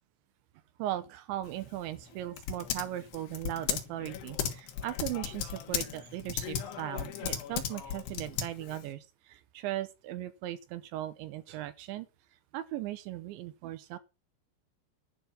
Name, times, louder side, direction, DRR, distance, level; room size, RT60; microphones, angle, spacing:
voice 1, 0.8-12.1 12.5-14.0, right 13 dB, 75° right, 3.1 m, -38 dB
Typing, 1.4-8.9, left 9 dB, 65° left, 3.3 m, -37 dB
11.5 x 5.7 x 8.4 m
omnidirectional pair, 5.6 m